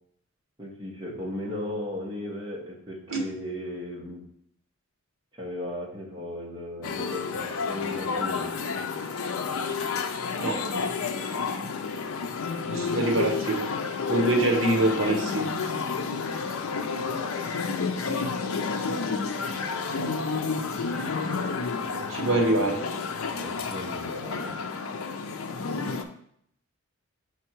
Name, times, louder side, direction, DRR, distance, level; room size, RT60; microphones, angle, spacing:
voice 1, 0.6-4.2 5.4-8.5 21.8-22.7 23.3-24.6, left 1 dB, 20° right, -4 dB, 1.3 m, -36 dB
sound 1, 6.8-26.0, left 5 dB, 75° left, 0.5 m, -30 dB
voice 2, 12.7-13.7 14.1-15.5 22.1-22.8 25.7-25.9, right 2 dB, 60° right, 2 dB, 1.2 m, -24 dB
5.9 x 3.6 x 4.5 m, 0.70 s
head